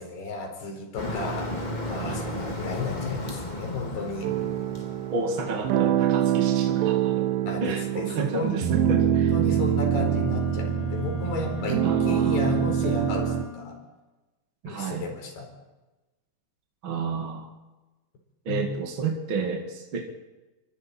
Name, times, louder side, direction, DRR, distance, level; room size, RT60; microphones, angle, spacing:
voice 1, 0.0-1.5 1.8-4.3 7.5-8.6 9.3-13.7 14.6-15.5 18.5-18.7, left 3 dB, 65° left, 2 dB, 6.4 m, -33 dB
Motor vehicle (road), 1.0-5.9, left 1 dB, 30° left, 0.8 m, -34 dB
sound 1, 4.2-13.5, right 9 dB, 80° right, 3.3 m, -25 dB
voice 2, 5.1-7.3 7.6-9.3 11.8-12.4 14.6-15.1 16.8-17.5 18.5-20.0, right 4 dB, 40° right, 1 dB, 2.1 m, -31 dB
Wind instrument woodwind instrument, 9.8-13.9, left 11 dB, 85° left, 5.2 m, -41 dB
29.0 x 24.0 x 4.5 m, 1.1 s
omnidirectional pair, 5.0 m